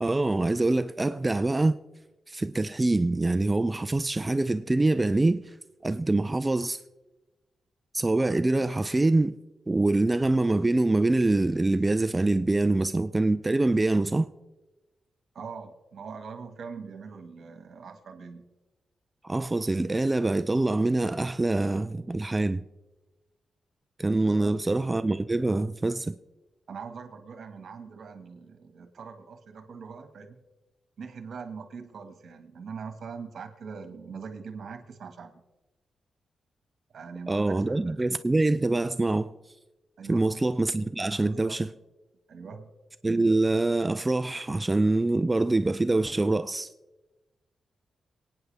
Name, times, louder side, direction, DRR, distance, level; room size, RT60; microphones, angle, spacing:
voice 1, 0.0-1.8 2.3-5.5 5.8-6.8 7.9-9.3 9.7-14.3 19.2-22.6 24.0-26.1 37.3-39.3 40.1-41.7 43.0-46.7, right 2 dB, 20° right, 0.4 m, -25 dB
voice 2, 15.3-18.4 24.2-24.5 26.7-30.4 31.0-35.4 36.9-38.1 40.0-40.3 41.2-41.6 42.3-42.7, right 5 dB, 65° right, 1.7 m, -42 dB
27.5 x 9.4 x 3.4 m
wide cardioid pair, 115°, 0 cm